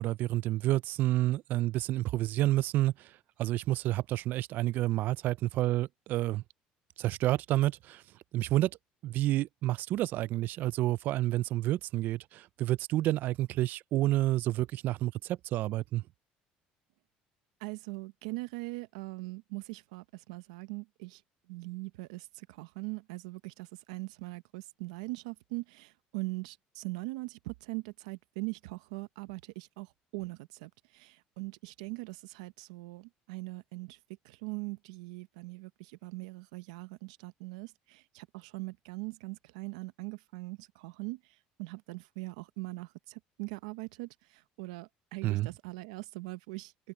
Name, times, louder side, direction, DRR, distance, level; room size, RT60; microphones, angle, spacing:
voice 1, 0.0-2.9 3.4-6.4 7.0-8.0 8.3-8.7 9.0-16.0 45.2-45.5, right 15 dB, 65° right, 0.3 m, -29 dB
voice 2, 17.6-21.2 21.5-34.0 34.2-41.2 41.6-46.7, right 25 dB, 90° right, 0.8 m, -41 dB
supercardioid pair, 85°, 3 cm